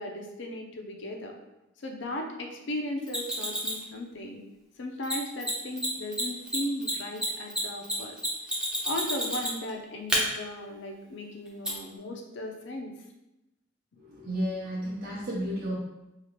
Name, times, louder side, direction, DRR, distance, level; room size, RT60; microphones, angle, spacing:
voice 1, 0.0-1.4 1.8-4.4 4.8-8.2 8.8-12.9, left 1 dB, 65° left, 3 dB, 0.5 m, -36 dB
Mechanisms, 3.1-3.8 5.0-5.1 5.4-5.5 5.8-5.9 6.1-9.7 10.1-10.2 11.6-11.7, equal, 5° right, 0.5 m, -29 dB
voice 2, 14.0-15.8, equal, 50° right, -7 dB, 0.6 m, -32 dB
2.8 x 2.4 x 3.1 m, 0.94 s
head